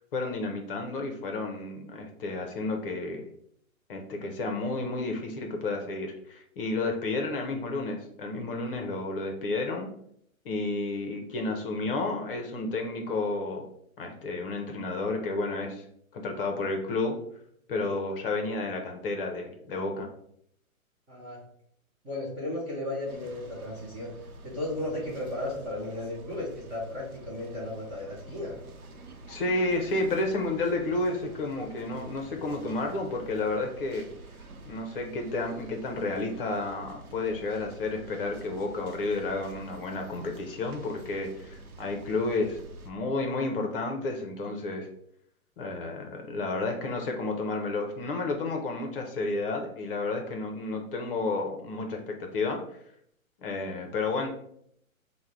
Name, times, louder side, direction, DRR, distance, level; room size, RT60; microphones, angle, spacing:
voice 1, 0.1-3.3 3.9-9.9 10.4-13.7 14.0-15.8 16.1-17.2 17.7-20.1 29.3-34.1 34.6-42.6 42.8-44.9 45.6-52.6 53.4-54.3, left 2 dB, 40° left, 3 dB, 0.7 m, -31 dB
voice 2, 21.1-21.4 22.0-24.1 24.4-28.6, left 1 dB, 10° right, -7 dB, 0.6 m, -35 dB
sound 1, 23.1-42.9, right 3 dB, 90° right, 0.8 m, -48 dB
3.6 x 2.2 x 4.4 m, 0.69 s
hypercardioid pair, 130°, 42 cm